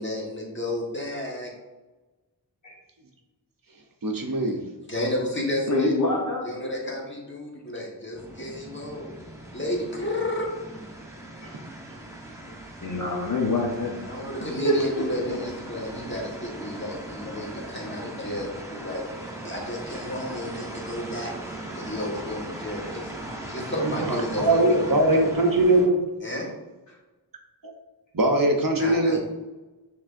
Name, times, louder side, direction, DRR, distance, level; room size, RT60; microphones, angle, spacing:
voice 1, 0.0-1.5 4.9-5.9 6.4-9.1 9.5-10.5 14.0-19.0 19.4-21.3 21.7-23.1 23.4-25.3 26.2-26.5 28.8-29.2, left 1 dB, 25° left, -2 dB, 1.3 m, -32 dB
voice 2, 4.0-4.6 11.4-11.5 23.8-26.0 28.1-29.2, right 1 dB, 50° right, 2 dB, 0.7 m, -21 dB
voice 3, 5.7-6.4 11.4-11.5 12.8-14.1 14.6-15.0, left 1 dB, 40° left, -3 dB, 0.9 m, -25 dB
sound 1, 8.1-25.9, right 1 dB, 5° right, 0.8 m, -39 dB
5.9 x 3.3 x 2.5 m, 1.2 s
wide cardioid pair, 50°, 43 cm